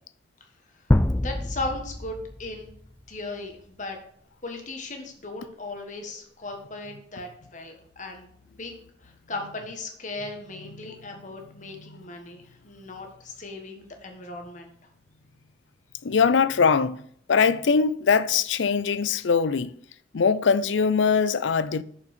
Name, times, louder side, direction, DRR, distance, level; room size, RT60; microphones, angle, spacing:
sound 1, 0.9-2.9, left 1 dB, 10° left, 0.3 m, -25 dB
voice 1, 1.2-2.7 3.1-4.0 4.4-8.7 9.0-14.7, left 2 dB, 40° left, 1.5 m, -37 dB
voice 2, 16.0-19.8 20.1-21.8, left 5 dB, 75° left, 0.5 m, -22 dB
6.6 x 5.9 x 6.6 m
head